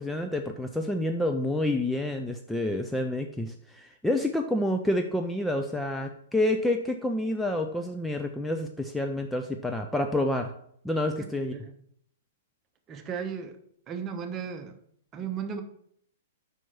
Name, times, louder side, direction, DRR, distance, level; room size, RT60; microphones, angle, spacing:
voice 1, 0.0-10.5 10.8-11.5, left 1 dB, 5° left, 4 dB, 0.5 m, -28 dB
voice 2, 12.9-13.6 13.9-14.8 15.1-15.6, right 7 dB, 25° right, 6 dB, 0.9 m, -35 dB
5.5 x 4.5 x 6.0 m, 0.67 s
figure-of-eight pair, 110°, 0 cm